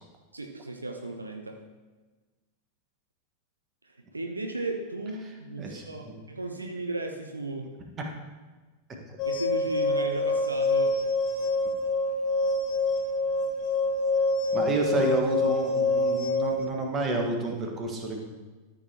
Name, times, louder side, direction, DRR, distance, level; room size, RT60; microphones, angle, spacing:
voice 1, 0.3-1.6 4.1-7.7 9.2-11.0 11.4-11.5, right 2 dB, 80° right, 4 dB, 0.7 m, -35 dB
voice 2, 5.6-6.1 8.9-9.2 14.5-18.2, right 2 dB, 25° right, 1 dB, 1.5 m, -30 dB
sound 1, 9.2-16.7, left 2 dB, 35° left, 1.5 m, -26 dB
13.0 x 6.9 x 3.0 m, 1.3 s
figure-of-eight pair, 90°, 0 cm